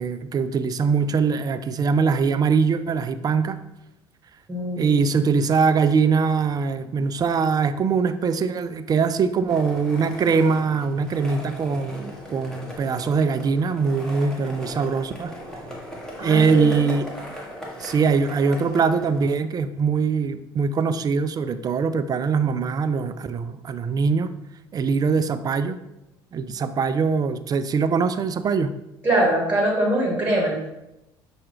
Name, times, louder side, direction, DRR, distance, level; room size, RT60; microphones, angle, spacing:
voice 1, 0.0-3.6 4.8-15.3 16.2-17.0 17.8-24.3 24.7-25.8 26.3-28.7, right 5 dB, 35° right, 11 dB, 0.3 m, -22 dB
voice 2, 4.5-5.0 16.2-16.8 29.0-30.7, right 1 dB, 15° right, -1 dB, 1.4 m, -22 dB
Skateboard, 9.5-19.3, equal, 5° left, 1.2 m, -38 dB
5.8 x 2.4 x 3.1 m, 0.90 s
hypercardioid pair, 65°, 12 cm